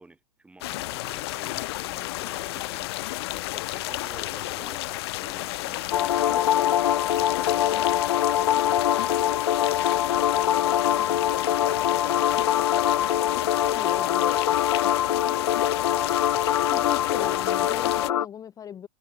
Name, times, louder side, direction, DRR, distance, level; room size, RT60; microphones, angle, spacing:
voice 1, 0.0-2.9 3.3-8.0 8.4-9.5 9.9-12.6 12.9-14.5 15.3-16.5 16.7-17.4, right 2 dB, 5° right, 6.0 m, -51 dB
sound 1, 0.6-18.1, left 18 dB, 40° left, 0.6 m, -32 dB
sound 2, 5.9-18.3, left 11 dB, 60° left, 1.7 m, -23 dB
voice 2, 13.7-14.6 16.7-18.9, left 9 dB, 15° left, 1.8 m, -38 dB
figure-of-eight pair, 110°, 20 cm